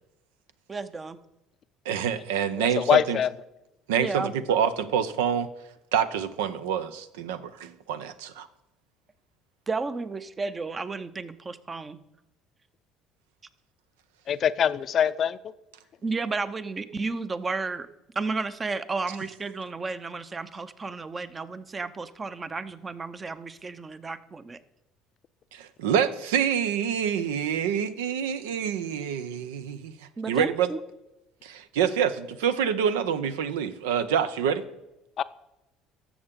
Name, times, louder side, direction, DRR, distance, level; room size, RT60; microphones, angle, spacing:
voice 1, 0.7-1.2 4.0-4.3 9.7-12.0 16.0-17.9 18.1-24.6 29.0-29.1 30.2-30.8, right 4 dB, 30° right, 13 dB, 0.7 m, -32 dB
voice 2, 1.9-3.2 3.9-5.5 5.9-8.5 25.5-29.9 30.3-30.7 31.4-34.6, right 8 dB, 90° right, 13 dB, 0.5 m, -27 dB
voice 3, 2.6-3.3 14.3-15.4 35.2-35.3, left 8 dB, 50° left, 15 dB, 0.4 m, -23 dB
13.5 x 7.1 x 3.7 m, 0.94 s
supercardioid pair, 80°, 0 cm